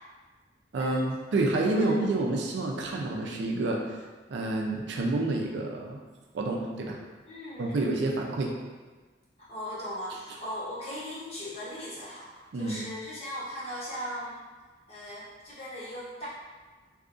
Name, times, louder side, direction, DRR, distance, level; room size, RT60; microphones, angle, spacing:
voice 1, 0.7-3.8 4.3-6.0 6.3-7.0 7.6-8.5 12.5-12.8, right 2 dB, 70° right, 0 dB, 0.4 m, -28 dB
voice 2, 7.3-8.3 9.5-12.3 12.5-14.4 14.9-16.3, equal, 35° left, -8 dB, 0.8 m, -38 dB
2.7 x 2.4 x 2.4 m, 1.3 s
head